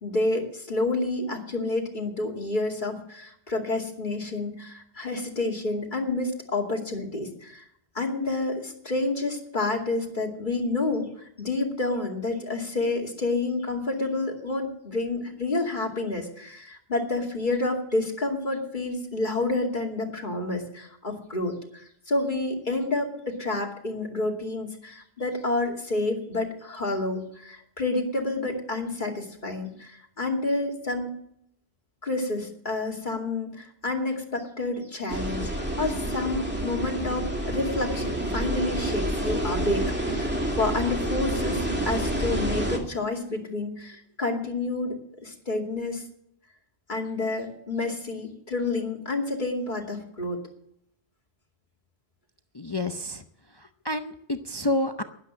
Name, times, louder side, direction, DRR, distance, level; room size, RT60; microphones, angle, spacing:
voice 1, 0.0-7.6 7.9-11.1 11.4-21.6 22.1-31.1 32.0-35.5 35.8-45.0 45.2-46.0 46.9-50.4, left 2 dB, 50° left, 1 dB, 2.7 m, -29 dB
sound 1, 35.1-42.8, right 1 dB, 10° right, 2.4 m, -28 dB
voice 2, 52.5-53.2 53.6-55.0, left 1 dB, 30° left, 7 dB, 0.6 m, -29 dB
12.0 x 11.0 x 7.3 m, 0.72 s
omnidirectional pair, 1.1 m